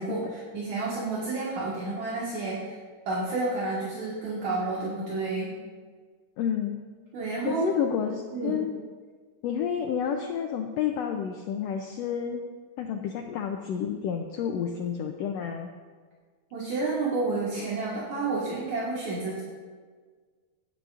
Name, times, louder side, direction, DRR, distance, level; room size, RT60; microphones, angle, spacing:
voice 1, 0.0-2.8 3.1-5.6 7.1-7.8 8.3-8.6 16.5-19.4, right 3 dB, 65° right, -7 dB, 2.9 m, -30 dB
voice 2, 6.4-6.8 7.5-8.8 9.4-12.4 12.8-15.7, left 8 dB, 90° left, 3 dB, 1.4 m, -30 dB
17.0 x 9.4 x 2.5 m, 1.5 s
omnidirectional pair, 3.6 m